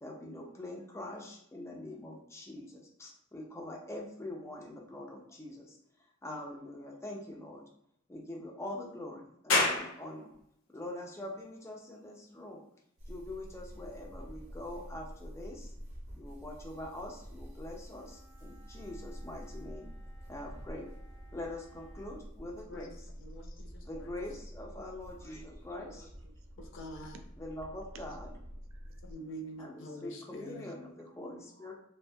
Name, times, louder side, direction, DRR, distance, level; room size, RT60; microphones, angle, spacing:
voice 1, 0.0-5.8 6.2-7.6 8.1-10.3 10.7-12.6 13.1-15.7 16.1-19.9 20.3-20.9 21.3-22.9 23.8-26.1 27.4-28.3 29.6-31.7, left 1 dB, 15° left, -1 dB, 0.4 m, -44 dB
sound 1, 9.5-22.6, left 2 dB, 90° left, 0.8 m, -40 dB
sound 2, 13.0-29.1, equal, 35° right, 0.7 m, -48 dB
Wind instrument woodwind instrument, 17.7-22.2, right 3 dB, 50° left, 0.8 m, -63 dB
voice 2, 23.2-24.2 26.6-27.2 29.0-30.7, equal, 65° left, 3 dB, 0.5 m, -46 dB
voice 3, 25.8-26.7 27.0-27.2 27.9-28.0 28.3-29.0 30.3-30.4 31.2-31.4, right 5 dB, 85° right, 7 dB, 0.4 m, -57 dB
2.6 x 2.1 x 2.6 m, 0.73 s
head